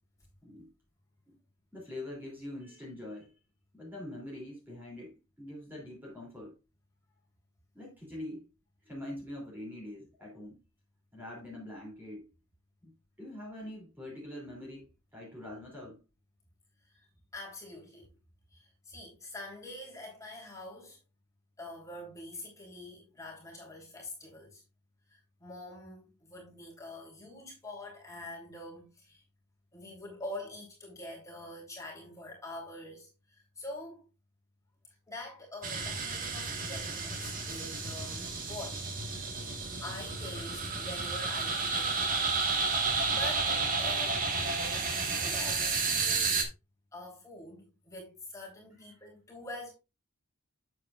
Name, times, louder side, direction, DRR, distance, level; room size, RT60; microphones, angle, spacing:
voice 1, 1.7-3.3 3.7-6.6 7.7-8.5 8.8-10.6 11.1-12.3 12.8-12.9 13.2-16.0 48.9-49.0, left 1 dB, 10° right, 3.0 m, -44 dB
voice 2, 17.3-18.1 18.5-21.0 21.6-24.6 25.1-29.2 29.7-34.0 35.1-39.3 39.8-42.3 42.8-46.4 46.9-49.7, left 1 dB, 15° left, 3.3 m, -45 dB
sound 1, 35.6-46.4, right 4 dB, 40° right, 1.6 m, -32 dB
8.4 x 8.0 x 2.5 m
head